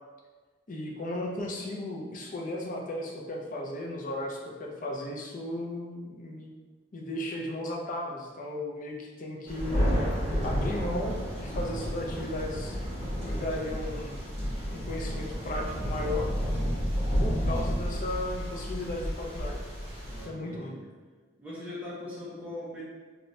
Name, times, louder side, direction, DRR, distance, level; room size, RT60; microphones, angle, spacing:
voice 1, 0.7-6.5 6.9-9.9 10.4-12.8 13.2-14.2 14.7-16.3 17.2-19.6 20.2-20.8, left 1 dB, 40° left, -1 dB, 0.5 m, -35 dB
Thunder, 9.5-20.2, equal, 30° right, 1.3 m, -31 dB
voice 2, 20.1-20.8 21.4-22.8, left 1 dB, 5° right, -9 dB, 0.7 m, -40 dB
3.2 x 2.9 x 2.6 m, 1.4 s
head